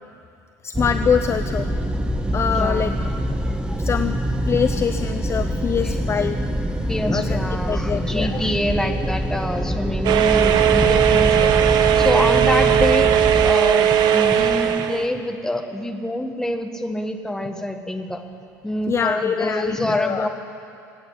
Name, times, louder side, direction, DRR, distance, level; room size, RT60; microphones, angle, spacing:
voice 1, 0.6-1.7 2.3-2.9 3.8-4.1 4.5-6.4 7.1-8.5 18.9-20.3, left 7 dB, 30° left, 9 dB, 0.6 m, -24 dB
sound 1, 0.7-13.5, right 1 dB, 10° right, 1.1 m, -25 dB
voice 2, 2.6-3.8 4.5-4.6 5.8-6.2 6.9-13.1 13.4-18.2 18.6-20.3, left 1 dB, 5° left, 5 dB, 1.5 m, -26 dB
sound 2, 10.0-15.1, right 9 dB, 50° right, 0.9 m, -17 dB
19.5 x 9.0 x 8.1 m, 2.5 s
figure-of-eight pair, 70°, 9 cm